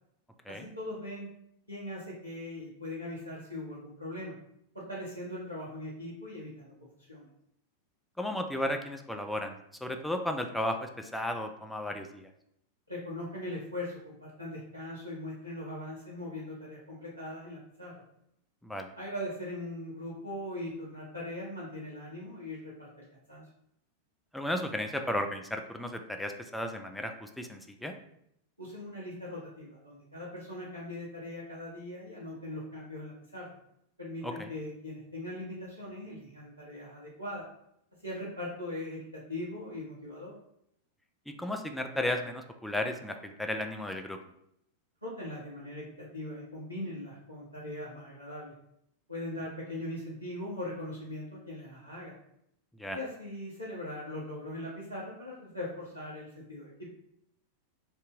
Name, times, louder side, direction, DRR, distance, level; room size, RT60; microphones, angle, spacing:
voice 1, 0.5-1.3 1.7-4.4 4.7-7.3 12.9-18.0 19.0-22.9 23.3-23.4 28.6-33.5 34.0-37.5 38.0-40.3 45.0-48.5 49.1-52.1 52.9-56.9, left 1 dB, 90° right, -7 dB, 0.7 m, -40 dB
voice 2, 8.2-12.3 18.6-18.9 24.3-27.9 34.2-34.5 41.3-44.2 52.8-53.0, left 1 dB, 5° left, 4 dB, 0.3 m, -34 dB
2.7 x 2.5 x 3.5 m, 0.75 s
figure-of-eight pair, 90°, 0 cm